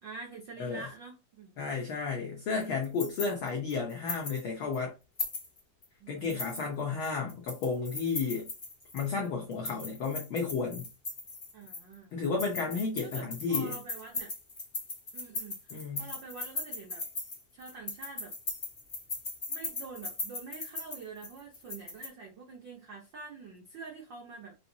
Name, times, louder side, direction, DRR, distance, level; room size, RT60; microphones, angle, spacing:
voice 1, 0.0-1.6 6.0-6.8 11.5-12.1 13.0-14.3 15.1-17.0 17.5-18.3 19.5-24.6, right 4 dB, 75° right, 1.0 m, -46 dB
voice 2, 1.6-4.9 6.1-8.5 8.9-10.8 12.1-13.7 15.7-16.1, left 5 dB, 80° left, 1.1 m, -32 dB
sound 1, 2.6-4.4 4.7-4.8 5.2-5.8 6.2-9.1 9.5-11.9 12.2-22.1, left 3 dB, 50° left, 0.6 m, -38 dB
5.5 x 2.7 x 2.8 m
omnidirectional pair, 3.4 m